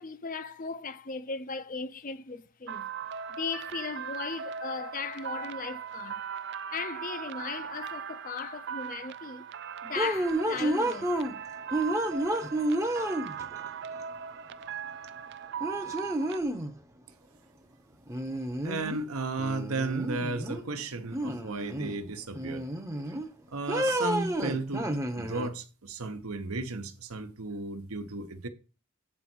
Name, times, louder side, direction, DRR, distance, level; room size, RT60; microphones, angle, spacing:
voice 1, 0.0-2.9 3.3-6.3 6.7-9.5 9.8-11.1, left 4 dB, 40° left, 0.5 m, -37 dB
sound 1, 2.7-16.4, right 7 dB, 50° right, 0.4 m, -39 dB
sound 2, 10.0-11.3 11.7-13.6 15.0-15.1 15.6-16.7 18.1-19.1 19.4-20.6 21.1-22.0 22.4-23.3 23.7-25.5, right 1 dB, 15° right, 0.7 m, -30 dB
voice 2, 18.6-22.7 23.5-28.5, right 3 dB, 85° right, 1.1 m, -34 dB
8.5 x 4.0 x 6.2 m
head